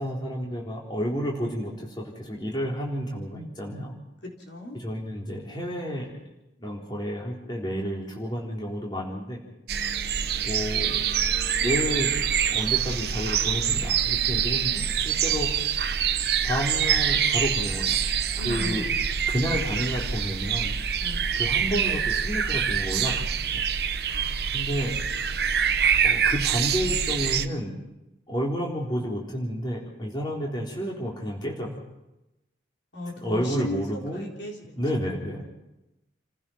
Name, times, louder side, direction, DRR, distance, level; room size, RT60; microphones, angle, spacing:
voice 1, 0.0-4.0 4.7-6.1 6.6-9.4 10.4-11.0 11.6-12.2 12.5-15.5 16.4-18.0 18.4-18.9 19.3-20.8 21.4-23.2 24.5-25.0 26.0-27.8 28.3-31.8 33.2-34.3 34.8-35.4, equal, 25° left, -2 dB, 3.6 m, -30 dB
voice 2, 4.5-4.8 18.4-19.3 21.0-21.6 24.1-24.6 32.9-34.7, left 1 dB, 70° left, 0 dB, 4.1 m, -37 dB
sound 1, 9.7-27.5, right 8 dB, 55° right, 0.9 m, -25 dB
30.0 x 15.5 x 5.8 m, 0.94 s
head